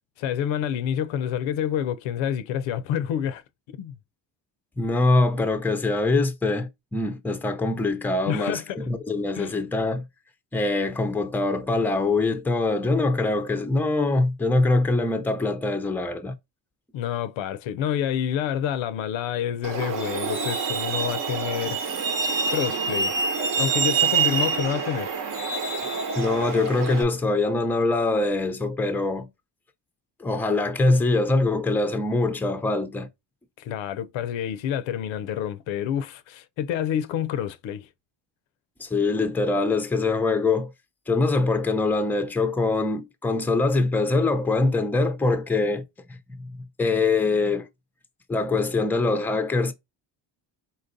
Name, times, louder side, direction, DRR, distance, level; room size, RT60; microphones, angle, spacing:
voice 1, 0.2-3.4 3.8-4.0 8.3-8.8 9.3-9.5 16.9-21.8 22.5-23.1 23.6-25.1 33.6-37.9, left 9 dB, 85° left, 0.6 m, -28 dB
voice 2, 4.8-10.0 10.5-16.3 26.2-29.3 30.2-33.1 38.8-40.7 41.1-45.8 46.1-47.7 48.3-49.7, left 3 dB, 5° left, 0.5 m, -23 dB
Truck, 19.6-27.0, right 5 dB, 45° right, 0.9 m, -26 dB
4.2 x 3.9 x 2.6 m
cardioid pair, 105°, 45 cm